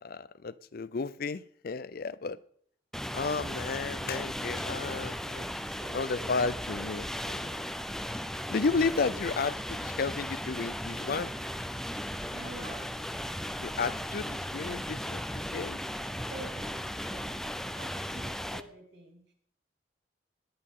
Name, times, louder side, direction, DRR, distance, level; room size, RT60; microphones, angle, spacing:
voice 1, 0.0-2.4 3.1-5.4 5.9-7.4 8.5-11.3 13.6-15.8, left 4 dB, 55° left, 0.5 m, -33 dB
sound 1, 2.9-18.6, equal, 5° left, 0.5 m, -36 dB
voice 2, 5.6-6.3 12.3-12.8 16.3-19.3, right 1 dB, 70° right, 4.4 m, -48 dB
18.0 x 10.5 x 3.8 m
head